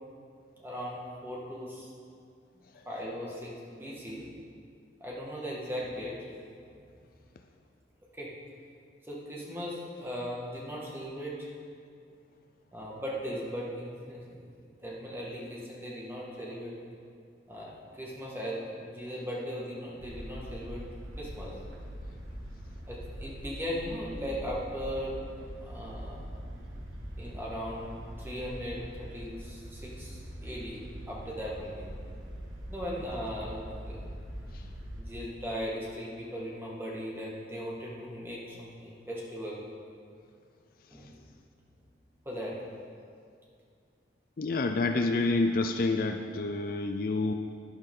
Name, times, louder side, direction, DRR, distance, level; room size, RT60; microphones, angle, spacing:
voice 1, 0.6-1.9 2.9-4.3 5.0-6.2 6.6-6.8 8.2-8.3 9.0-11.5 12.7-14.5 14.8-16.7 17.5-20.8 21.2-21.6 22.9-25.2 25.6-26.2 27.2-31.8 32.7-33.6 33.9-34.0 35.0-39.6 40.9-41.1 42.3-42.6, equal, 10° right, -5 dB, 1.8 m, -38 dB
sound 1, 20.0-35.0, equal, 90° right, 1.7 m, -43 dB
voice 2, 44.4-47.3, left 3 dB, 50° left, 6 dB, 0.5 m, -28 dB
11.5 x 10.5 x 3.8 m, 2.3 s
head